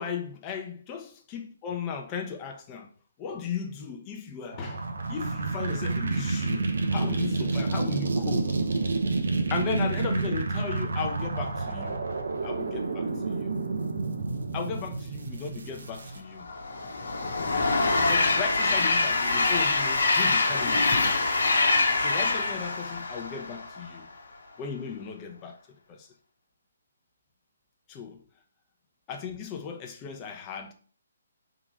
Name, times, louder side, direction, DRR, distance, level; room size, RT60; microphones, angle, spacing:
voice 1, 0.0-2.9 3.2-4.8 5.1-8.5 9.5-12.0 12.4-13.5 14.5-16.5 18.0-21.2 22.0-24.1 24.6-25.6 25.9-26.1 27.9-28.2 29.1-30.7, left 6 dB, 20° left, 0.7 m, -36 dB
sound 1, 4.5-16.2, right 3 dB, 75° right, 0.8 m, -29 dB
Train, 16.4-23.9, left 3 dB, 80° left, 1.0 m, -25 dB
3.8 x 2.9 x 4.8 m
hypercardioid pair, 155°, 0 cm